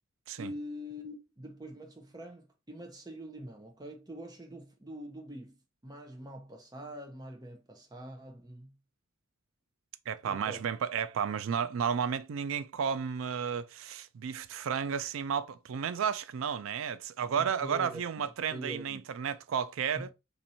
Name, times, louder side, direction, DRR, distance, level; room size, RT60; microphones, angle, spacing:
voice 1, 0.4-5.6 5.8-8.8 10.2-10.6 17.4-19.0 19.9-20.1, equal, 20° right, 0.7 m, -44 dB
voice 2, 10.1-20.1, right 7 dB, 70° right, 0.3 m, -32 dB
2.8 x 2.6 x 4.0 m
head